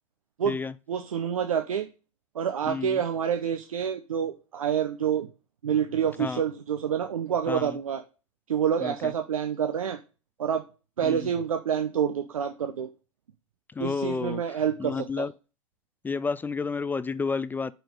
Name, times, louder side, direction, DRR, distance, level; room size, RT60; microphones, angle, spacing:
voice 1, 0.9-1.9 2.3-5.3 5.6-8.0 8.5-10.0 10.4-10.6 11.0-12.9 13.8-15.3, right 8 dB, 80° right, 0.8 m, -27 dB
voice 2, 2.7-3.0 6.2-6.4 7.5-7.8 8.8-9.1 11.0-11.3 13.7-15.3 16.0-17.7, left 4 dB, 10° left, 0.4 m, -31 dB
6.1 x 5.1 x 6.6 m
hypercardioid pair, 95°, 18 cm